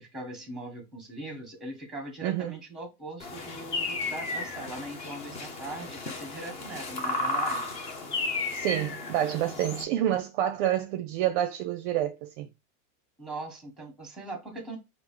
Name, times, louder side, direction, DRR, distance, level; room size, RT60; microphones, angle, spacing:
voice 1, 0.0-7.7 13.2-14.8, right 2 dB, ahead, 1.0 m, -40 dB
voice 2, 2.2-2.6 8.5-12.5, right 12 dB, 45° right, 0.5 m, -28 dB
sound 1, 3.2-9.8, left 2 dB, 20° left, 0.3 m, -33 dB
4.6 x 2.4 x 3.6 m
supercardioid pair, 170°, 38 cm